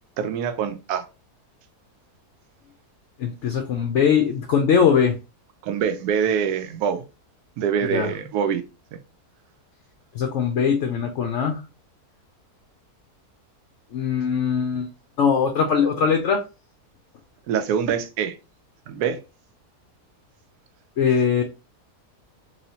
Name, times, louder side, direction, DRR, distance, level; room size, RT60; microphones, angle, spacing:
voice 1, 0.2-1.0 5.6-7.0 7.6-8.6 17.5-18.4 18.9-19.2, right 7 dB, 80° right, 1.1 m, -24 dB
voice 2, 3.2-5.2 7.8-8.1 10.1-11.6 13.9-14.9 15.2-16.4 21.0-21.4, left 6 dB, 65° left, 0.7 m, -21 dB
3.3 x 3.0 x 2.7 m
omnidirectional pair, 1.7 m